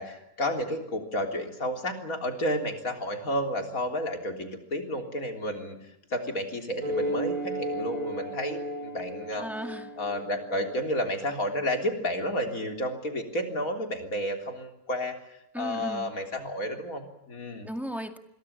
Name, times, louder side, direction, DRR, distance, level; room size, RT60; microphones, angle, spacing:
voice 1, 0.0-5.8 6.1-9.5 10.0-17.7, equal, 75° left, 4 dB, 4.0 m, -31 dB
sound 1, 6.8-11.8, right 1 dB, 25° right, 4.0 m, -35 dB
voice 2, 9.3-10.0 15.5-16.1 17.6-18.2, equal, ahead, 6 dB, 2.0 m, -36 dB
27.0 x 22.5 x 7.1 m, 0.85 s
omnidirectional pair, 1.5 m